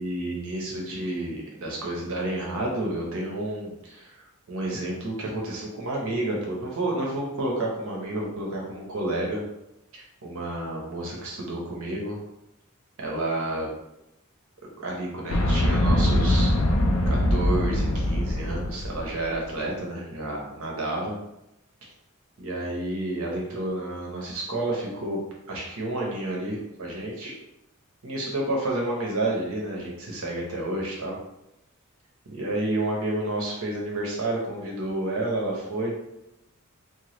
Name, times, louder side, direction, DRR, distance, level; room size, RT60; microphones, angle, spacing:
voice 1, 0.0-9.4 9.9-12.2 13.0-13.7 14.6-16.5 17.1-21.1 22.4-25.2 25.5-27.3 28.0-31.2 32.3-35.9, right 1 dB, 85° right, -2 dB, 0.9 m, -30 dB
sound 1, 15.3-19.2, left 1 dB, 85° left, 0.4 m, -22 dB
2.9 x 2.2 x 3.0 m, 0.86 s
head